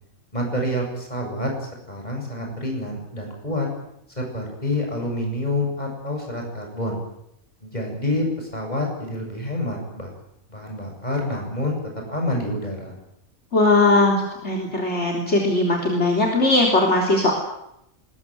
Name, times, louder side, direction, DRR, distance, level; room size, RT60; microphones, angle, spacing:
voice 1, 0.3-1.5 1.9-3.7 4.2-7.0 7.6-10.1 10.5-11.8 12.1-12.9, left 1 dB, 30° left, 1 dB, 8.0 m, -27 dB
voice 2, 13.5-17.3, left 2 dB, 55° left, 0 dB, 3.8 m, -19 dB
21.0 x 20.5 x 9.5 m, 0.81 s
omnidirectional pair, 1.4 m